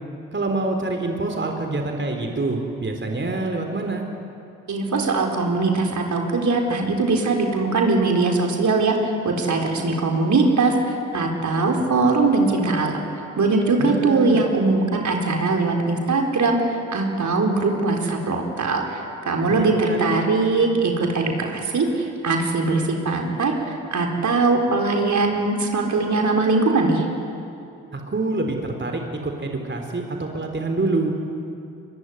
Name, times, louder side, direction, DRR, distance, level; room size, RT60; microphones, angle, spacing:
voice 1, 0.3-4.1 13.8-14.4 19.6-20.2 27.9-31.1, right 2 dB, 30° right, 3 dB, 4.0 m, -26 dB
voice 2, 4.7-13.0 13.4-27.1, right 3 dB, 55° right, 2 dB, 4.5 m, -21 dB
24.0 x 23.0 x 9.9 m, 2.6 s
hypercardioid pair, 40°, 36 cm